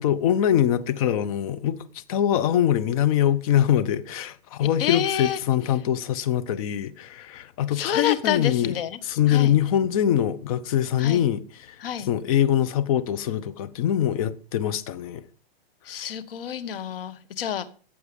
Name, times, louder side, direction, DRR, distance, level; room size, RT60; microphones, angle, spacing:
voice 1, 0.0-8.7 9.0-15.2, left 10 dB, 35° left, 0.9 m, -23 dB
voice 2, 4.8-5.4 7.7-9.0 9.3-9.5 11.0-11.2 11.8-12.1 15.9-17.7, left 9 dB, 65° left, 1.6 m, -28 dB
15.0 x 8.5 x 5.3 m
hypercardioid pair, 155°, 31 cm